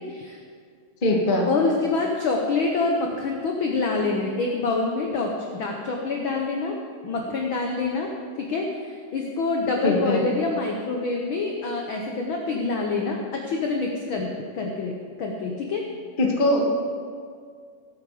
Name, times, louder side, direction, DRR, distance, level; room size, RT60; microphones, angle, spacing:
voice 1, 0.1-0.4 1.5-6.8 7.0-8.1 8.4-15.8, left 3 dB, 70° left, 1 dB, 1.2 m, -26 dB
voice 2, 1.0-1.5 9.8-10.3 16.2-16.7, left 1 dB, 25° left, -1 dB, 1.1 m, -21 dB
18.0 x 8.9 x 4.9 m, 2.1 s
omnidirectional pair, 3.7 m